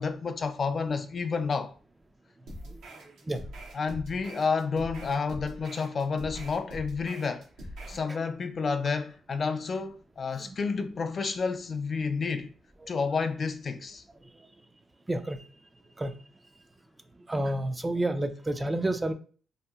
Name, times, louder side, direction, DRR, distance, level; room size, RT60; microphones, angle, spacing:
voice 1, 0.0-1.7 3.7-7.5 7.9-12.5 12.9-14.0, left 5 dB, 50° left, 0.3 m, -30 dB
sound 1, 2.5-8.1, equal, 80° right, 0.8 m, -43 dB
voice 2, 15.1-15.5 16.0-16.2 17.3-19.1, right 1 dB, 20° right, 0.4 m, -30 dB
2.8 x 2.6 x 2.3 m
supercardioid pair, 60°, 0 cm